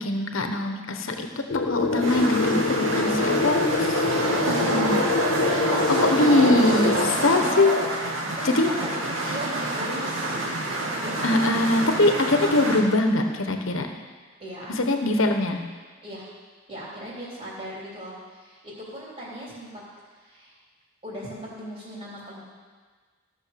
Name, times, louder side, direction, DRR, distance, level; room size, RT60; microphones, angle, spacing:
voice 1, 0.0-4.0 4.5-5.0 6.0-6.9 7.2-7.8 8.4-8.7 11.2-13.9 14.7-15.6, left 2 dB, 85° left, 5 dB, 1.2 m, -22 dB
sound 1, 1.5-7.1, left 4 dB, 60° left, 0.5 m, -26 dB
sound 2, 1.7-12.8, right 1 dB, 90° right, 2.1 m, -27 dB
voice 2, 3.8-5.2 5.5-6.2 6.7-7.1 8.3-11.1 14.4-14.9 15.2-15.3 16.0-16.3 16.7-20.5 21.0-22.4, right 1 dB, 30° right, -6 dB, 3.3 m, -37 dB
15.0 x 6.5 x 6.8 m, 1.5 s
head